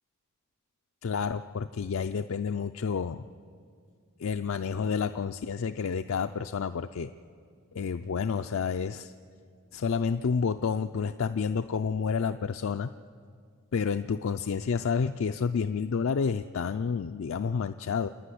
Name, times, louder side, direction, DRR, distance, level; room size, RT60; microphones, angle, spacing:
voice 1, 1.0-3.3 4.2-7.1 7.7-9.1 9.7-12.9 13.7-18.1, left 6 dB, 65° left, 8 dB, 0.4 m, -29 dB
27.5 x 10.0 x 9.9 m, 2.2 s
head